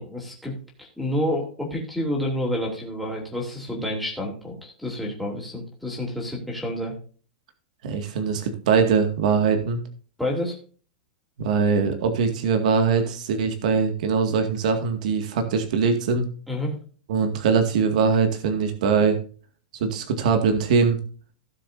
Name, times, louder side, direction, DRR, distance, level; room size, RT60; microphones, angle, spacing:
voice 1, 0.0-6.9 10.2-10.5 16.5-16.7, left 1 dB, ahead, -3 dB, 3.0 m, -29 dB
voice 2, 7.8-9.8 11.4-16.3 17.1-19.2 19.8-21.0, right 5 dB, 55° right, 6 dB, 2.1 m, -22 dB
17.0 x 6.9 x 2.7 m, 0.40 s
supercardioid pair, 175°, 5 cm